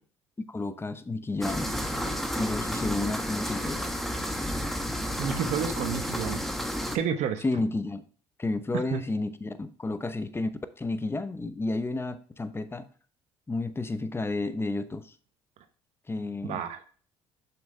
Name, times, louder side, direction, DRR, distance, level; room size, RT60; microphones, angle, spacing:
voice 1, 0.5-1.7 2.4-3.9 7.4-8.0 8.4-10.5 10.8-12.8 13.5-15.1 16.1-16.6, left 2 dB, 20° left, 11 dB, 0.9 m, -31 dB
sound 1, 1.4-7.0, equal, ahead, 1.1 m, -31 dB
voice 2, 5.2-6.4 6.9-7.4 8.9-9.0 16.4-16.8, right 8 dB, 65° right, 8 dB, 0.9 m, -30 dB
7.1 x 5.9 x 3.2 m, 0.42 s
hypercardioid pair, 65°, 12 cm